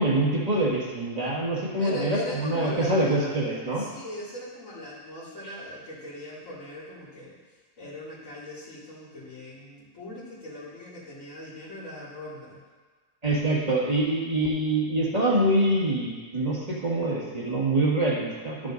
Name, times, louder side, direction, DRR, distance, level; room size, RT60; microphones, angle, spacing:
voice 1, 0.0-3.9 5.4-5.5 13.2-18.7, right 1 dB, 30° right, -5 dB, 1.6 m, -25 dB
voice 2, 1.8-3.4 3.8-7.4 7.8-12.6, left 1 dB, 70° left, -11 dB, 2.8 m, -40 dB
12.5 x 6.3 x 3.9 m, 1.4 s
omnidirectional pair, 1.4 m